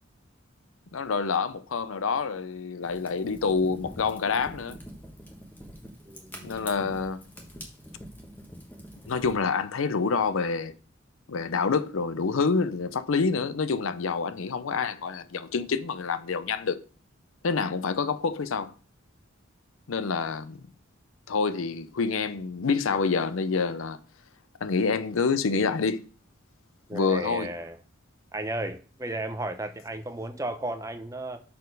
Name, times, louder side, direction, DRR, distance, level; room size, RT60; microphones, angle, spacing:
voice 1, 0.9-4.8 6.4-7.2 9.1-10.7 11.3-16.8 17.4-18.7 19.9-20.6 21.3-24.0 24.6-26.0 26.9-27.5, left 5 dB, 85° left, 0.6 m, -27 dB
Fire, 2.8-9.3, equal, 10° left, 1.1 m, -45 dB
voice 2, 6.0-6.8 26.9-27.8 28.3-31.4, right 1 dB, 15° right, 0.5 m, -34 dB
6.6 x 4.2 x 5.2 m
head